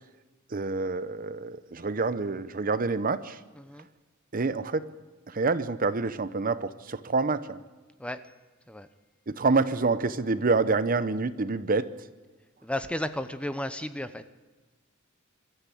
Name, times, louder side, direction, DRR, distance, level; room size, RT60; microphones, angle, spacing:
voice 1, 0.5-3.4 4.3-4.9 5.3-7.6 9.3-11.9, right 3 dB, 45° right, 14 dB, 0.8 m, -27 dB
voice 2, 12.6-14.3, left 1 dB, 5° left, 11 dB, 0.7 m, -33 dB
24.0 x 13.5 x 8.4 m, 1.3 s
head